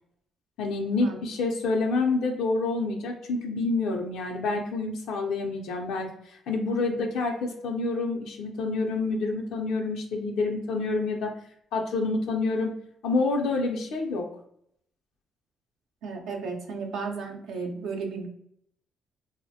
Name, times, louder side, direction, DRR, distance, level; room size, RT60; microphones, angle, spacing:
voice 1, 0.6-11.3 11.7-12.7 13.0-14.2, left 3 dB, 85° left, 1 dB, 0.5 m, -28 dB
voice 2, 16.0-18.3, right 4 dB, 85° right, 2 dB, 0.6 m, -34 dB
3.1 x 2.0 x 2.7 m, 0.70 s
cardioid pair, 90°, 0 cm